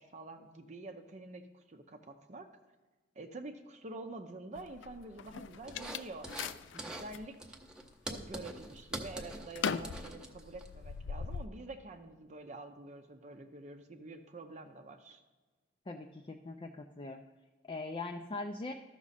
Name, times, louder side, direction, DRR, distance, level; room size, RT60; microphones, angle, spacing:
voice 1, 0.0-2.5 3.2-6.3 6.7-7.6 8.1-15.2, right 2 dB, 40° right, 5 dB, 0.6 m, -47 dB
sound 1, 4.6-7.3 7.8-8.4 8.7-11.5, left 6 dB, 90° left, 0.4 m, -40 dB
sound 2, 5.7-6.5 6.8-7.1 7.4-10.7, right 1 dB, 5° right, 0.8 m, -43 dB
voice 2, 15.9-17.2 17.6-18.7, left 3 dB, 30° left, 4 dB, 0.4 m, -41 dB
13.0 x 6.0 x 4.1 m, 1.3 s
head